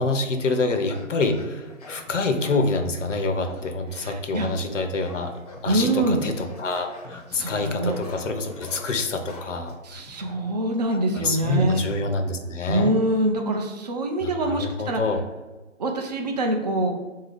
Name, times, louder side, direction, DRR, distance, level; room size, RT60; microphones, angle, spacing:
voice 1, 0.0-5.3 5.6-9.7 10.9-13.0 14.2-15.2, left 3 dB, 70° left, 6 dB, 0.7 m, -26 dB
sound 1, 0.9-2.7 3.4-4.1 4.4-10.6, left 2 dB, 30° left, 0.6 m, -44 dB
voice 2, 3.9-4.5 5.7-6.2 7.3-7.9 9.8-11.8 12.7-15.0 15.8-16.9, right 1 dB, 35° right, 3 dB, 0.5 m, -24 dB
3.7 x 2.8 x 4.8 m, 1.2 s
figure-of-eight pair, 145°, 39 cm